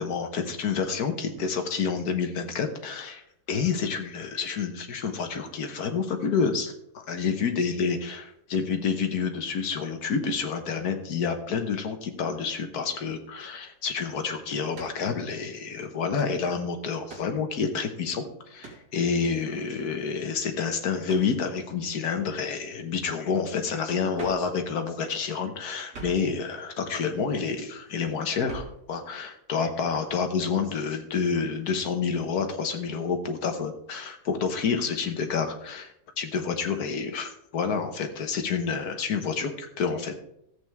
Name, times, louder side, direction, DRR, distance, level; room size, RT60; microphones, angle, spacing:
voice 1, 0.0-3.2 3.5-8.3 8.5-40.1, left 5 dB, 75° left, 6 dB, 1.7 m, -29 dB
sound 1, 14.7-15.1 16.2-16.4 17.1-17.4 18.6-18.9 21.1-21.4 24.2-24.5 25.9-26.3 28.5-28.8, right 4 dB, 90° right, 2.7 m, -42 dB
14.0 x 8.1 x 3.5 m, 0.77 s
omnidirectional pair, 1.7 m